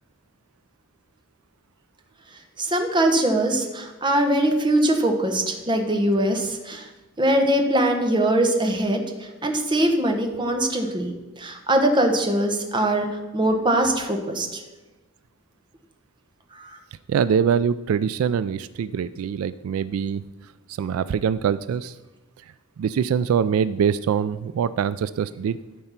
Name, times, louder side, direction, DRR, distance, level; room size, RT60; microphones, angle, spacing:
voice 1, 2.6-6.8 7.2-9.0 9.4-13.1 13.3-14.6 16.6-16.7, right 1 dB, 20° right, 4 dB, 1.2 m, -22 dB
voice 2, 17.1-20.2 20.7-21.9 22.8-25.6, right 7 dB, 80° right, 16 dB, 0.3 m, -23 dB
13.0 x 4.4 x 5.8 m, 1.2 s
head